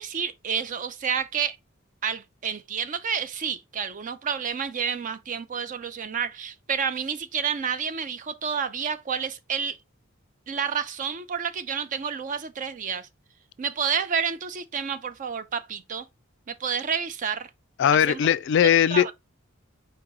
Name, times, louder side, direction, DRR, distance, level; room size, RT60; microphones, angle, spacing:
voice 1, 0.0-1.6 2.0-9.8 10.5-13.1 13.6-16.1 16.5-17.5 17.9-18.2 18.9-19.1, right 7 dB, 40° right, 0.4 m, -29 dB
voice 2, 17.8-19.1, left 9 dB, 60° left, 0.3 m, -19 dB
4.6 x 2.9 x 3.7 m
head